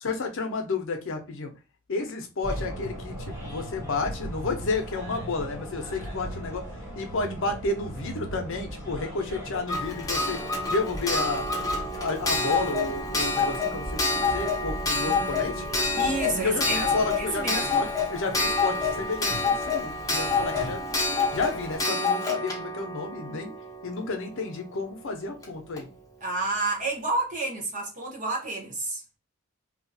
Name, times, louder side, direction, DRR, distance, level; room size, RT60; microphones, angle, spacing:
voice 1, 0.0-1.5 1.9-6.6 7.0-10.4 10.7-11.5 11.9-15.6 16.4-20.9 21.3-23.5 23.8-25.9, left 3 dB, 65° left, 0.6 m, -31 dB
sound 1, 2.4-21.8, right 1 dB, 15° right, 0.9 m, -39 dB
Clock, 9.7-24.3 25.4-25.5 25.8-25.9, left 3 dB, 15° left, 0.6 m, -28 dB
voice 2, 15.9-17.8 26.2-29.0, right 2 dB, 40° right, 1.0 m, -30 dB
2.7 x 2.4 x 2.6 m
head